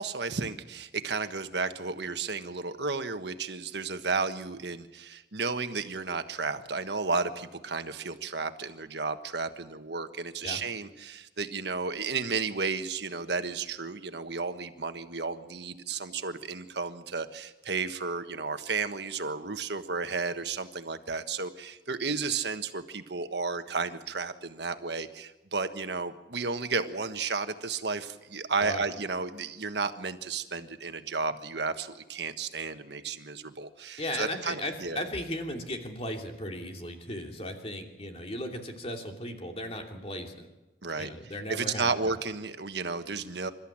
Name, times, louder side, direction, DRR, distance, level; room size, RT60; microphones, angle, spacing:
voice 1, 0.0-35.0 40.8-41.1 41.5-43.5, right 4 dB, 70° right, 9 dB, 1.4 m, -33 dB
voice 2, 34.0-40.5 41.0-41.9, left 1 dB, 35° left, 3 dB, 2.9 m, -36 dB
27.5 x 13.5 x 8.8 m, 1.0 s
head